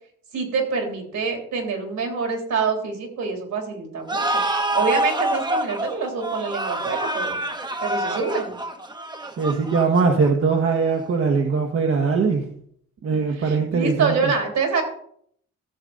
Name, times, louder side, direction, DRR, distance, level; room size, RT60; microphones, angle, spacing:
voice 1, 0.3-4.4 4.7-7.4 7.8-8.6 13.3-14.8, right 5 dB, 70° right, 2 dB, 3.3 m, -26 dB
sound 1, 4.1-10.5, right 1 dB, 15° right, 1.1 m, -26 dB
voice 2, 9.4-12.5 13.0-14.3, right 5 dB, 50° right, 2 dB, 1.4 m, -21 dB
14.0 x 7.1 x 4.0 m, 0.65 s
cardioid pair, 90°, 30 cm